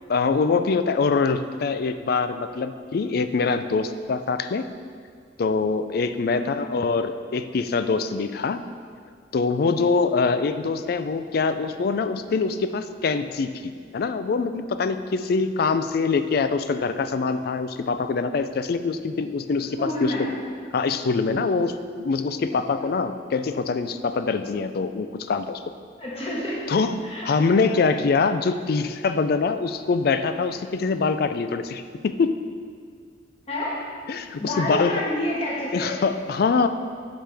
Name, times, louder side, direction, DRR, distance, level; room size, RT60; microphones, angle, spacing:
voice 1, 0.1-4.7 5.4-8.6 9.3-20.1 20.7-25.6 26.7-32.4 34.1-35.0 35.7-36.7, left 4 dB, 55° left, 10 dB, 0.3 m, -24 dB
voice 2, 6.3-6.6 19.6-20.3 22.5-22.9 26.0-26.7 27.0-27.8 33.5-33.8 34.4-36.0, left 1 dB, 30° left, -4 dB, 1.4 m, -30 dB
10.0 x 5.9 x 3.4 m, 2.1 s
head